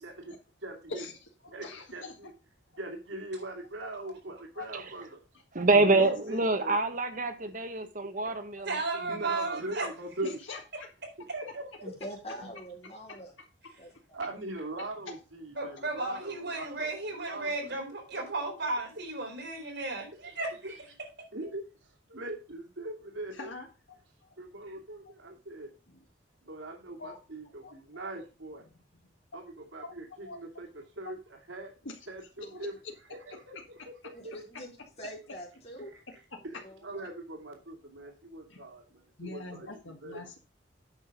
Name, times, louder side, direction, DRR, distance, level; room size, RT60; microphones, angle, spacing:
voice 1, 0.0-1.0 1.4-2.3 2.8-5.2 5.7-6.8 8.0-8.3 9.1-10.4 11.2-11.9 12.4-12.5 14.1-18.2 19.9-20.4 20.6-20.7 21.3-23.5 24.4-25.7 26.4-28.7 29.3-31.8 32.1-32.7 33.1-34.3 35.9-40.3, right 2 dB, 85° right, 2.7 m, -42 dB
voice 2, 0.9-2.1 4.5-4.6 5.7-6.5 10.5-10.9 23.3-24.3 27.0-27.2 27.6-27.7 29.8-29.9 30.2-30.4 31.0-31.1 31.8-31.9 32.4-32.7 36.3-36.4 38.5-38.7 39.2-40.4, left 2 dB, 90° left, 1.7 m, -43 dB
voice 3, 5.5-8.8 9.1-9.2, right 3 dB, 45° right, 1.4 m, -26 dB
voice 4, 8.7-9.9 15.6-20.7, right 3 dB, 60° right, 4.1 m, -34 dB
voice 5, 11.8-13.3 13.8-13.9 34.1-34.7 35.0-35.9 36.5-37.1, equal, 35° left, 4.4 m, -44 dB
8.9 x 6.3 x 5.3 m
head